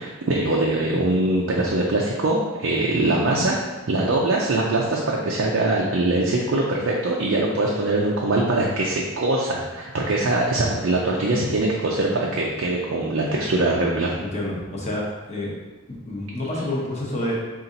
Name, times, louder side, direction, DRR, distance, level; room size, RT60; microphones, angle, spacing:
voice 1, 0.0-3.6 3.9-14.2, right 2 dB, 60° right, -2 dB, 0.4 m, -22 dB
voice 2, 14.2-15.6 15.9-17.4, left 1 dB, 30° left, -4 dB, 0.8 m, -28 dB
4.0 x 2.5 x 3.9 m, 1.2 s
head